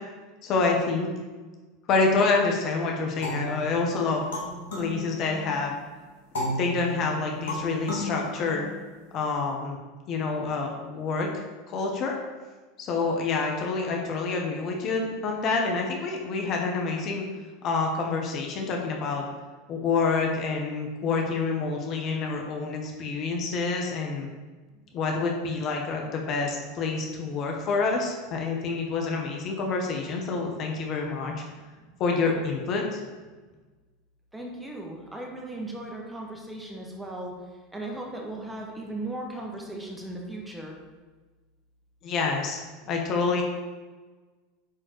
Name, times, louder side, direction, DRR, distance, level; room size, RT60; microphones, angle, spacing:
voice 1, 0.4-1.1 1.9-4.2 4.8-5.7 6.4-8.7 9.1-9.8 10.1-11.3 11.7-12.2 12.8-17.3 17.6-19.2 19.7-24.3 24.9-31.4 32.0-33.0 42.0-42.6 42.9-43.4, left 4 dB, 45° left, 1 dB, 1.5 m, -27 dB
sound 1, 3.2-5.7 6.3-9.1, left 1 dB, 80° left, 2.6 m, -34 dB
voice 2, 34.3-37.3 37.7-40.8, right 2 dB, 10° right, -1 dB, 1.8 m, -37 dB
8.9 x 4.3 x 4.8 m, 1.3 s
hypercardioid pair, 85°, 0 cm